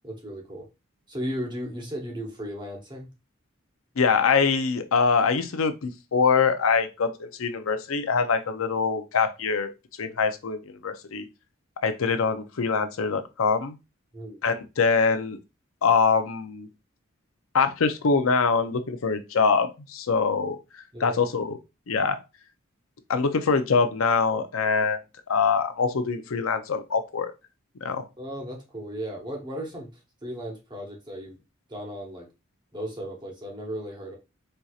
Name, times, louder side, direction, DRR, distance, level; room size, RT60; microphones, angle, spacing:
voice 1, 0.0-0.7 1.1-3.1 14.1-14.4 20.9-21.2 28.2-29.9 30.2-31.4 31.7-32.3 32.7-34.2, equal, 20° right, 1.0 m, -35 dB
voice 2, 4.0-9.7 10.0-11.3 11.8-13.8 14.4-15.4 15.8-16.7 17.5-20.6 21.0-21.6 21.9-22.2 23.1-25.0 25.3-27.3 27.8-28.0, left 5 dB, 80° left, 0.5 m, -24 dB
4.4 x 2.7 x 2.4 m
head